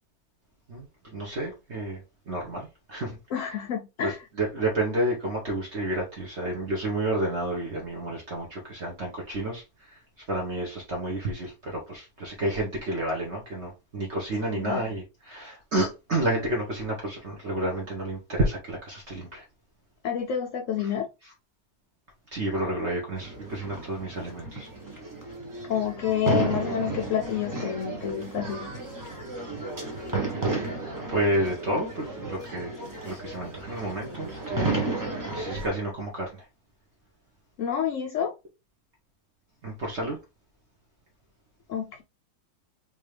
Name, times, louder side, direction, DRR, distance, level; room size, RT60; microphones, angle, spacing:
voice 1, 1.1-2.0 2.3-3.2 4.0-4.1 4.4-9.6 10.3-19.4 22.3-24.7 31.1-32.7 33.0-34.8 35.3-36.4 39.6-40.2, right 1 dB, 45° right, 1.2 m, -30 dB
voice 2, 3.3-4.2 14.5-14.8 20.0-21.1 25.6-28.7 37.6-38.3 41.7-42.0, left 9 dB, 70° left, 0.7 m, -29 dB
sound 1, 23.2-35.7, right 3 dB, 20° right, 0.6 m, -33 dB
3.5 x 2.8 x 3.2 m
omnidirectional pair, 1.8 m